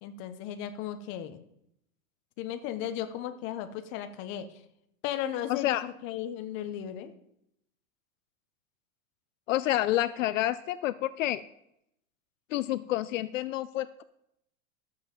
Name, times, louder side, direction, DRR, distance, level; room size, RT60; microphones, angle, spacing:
voice 1, 0.0-1.4 2.4-4.5 5.0-7.1, left 10 dB, 30° left, 9 dB, 0.9 m, -35 dB
voice 2, 5.5-5.9 9.5-11.4 12.5-14.0, left 14 dB, 70° left, 15 dB, 0.6 m, -29 dB
12.5 x 7.6 x 5.2 m, 0.78 s
supercardioid pair, 155°, 40 cm